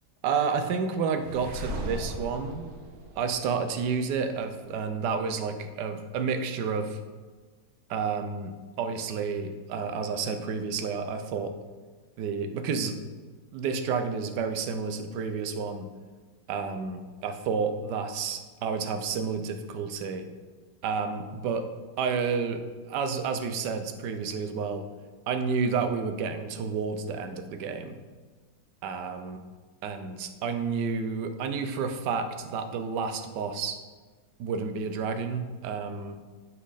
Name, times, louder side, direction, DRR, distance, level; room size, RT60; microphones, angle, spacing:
voice 1, 0.2-2.7 3.2-7.0 7.9-11.6 12.2-13.0 13.5-15.9 16.5-20.3 20.8-21.7 22.0-24.9 25.3-28.0 28.8-29.4 29.8-33.8 34.4-36.2, right 5 dB, 65° right, 8 dB, 1.2 m, -30 dB
sound 1, 1.2-4.2, right 1 dB, 90° right, 1.8 m, -38 dB
9.7 x 5.9 x 4.0 m, 1.4 s
omnidirectional pair, 2.2 m